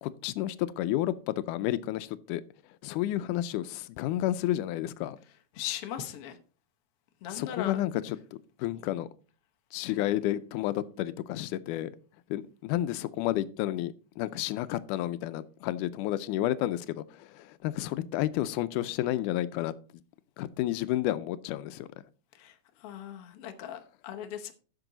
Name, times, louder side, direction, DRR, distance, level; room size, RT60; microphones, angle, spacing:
voice 1, 0.0-2.4 2.8-5.2 7.3-8.2 8.6-9.1 9.7-11.9 12.3-19.7 20.4-21.9, left 14 dB, 90° left, 2.1 m, -31 dB
voice 2, 5.5-6.4 7.2-7.8 9.8-10.0 22.3-24.5, left 10 dB, 60° left, 1.7 m, -39 dB
13.5 x 6.1 x 3.9 m
omnidirectional pair, 3.5 m